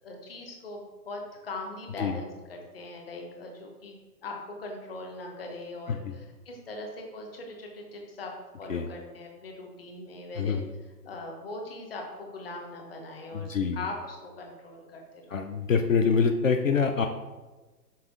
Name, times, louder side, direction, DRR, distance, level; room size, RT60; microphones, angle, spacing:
voice 1, 0.0-3.9 4.2-8.3 8.6-10.6 11.0-15.4, left 2 dB, 35° left, 1 dB, 1.1 m, -40 dB
voice 2, 13.3-13.8 15.3-17.1, left 5 dB, 55° left, 5 dB, 0.5 m, -25 dB
5.9 x 5.2 x 3.6 m, 1.2 s
hypercardioid pair, 175°, 49 cm